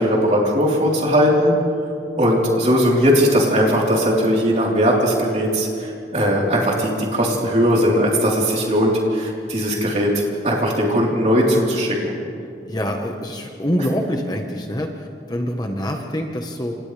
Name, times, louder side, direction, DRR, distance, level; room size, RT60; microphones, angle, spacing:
voice 1, 0.0-1.5 2.2-12.1, equal, 35° right, -3 dB, 4.1 m, -19 dB
voice 2, 12.6-16.8, equal, 20° left, 2 dB, 1.3 m, -25 dB
29.5 x 27.5 x 3.5 m, 2.5 s
head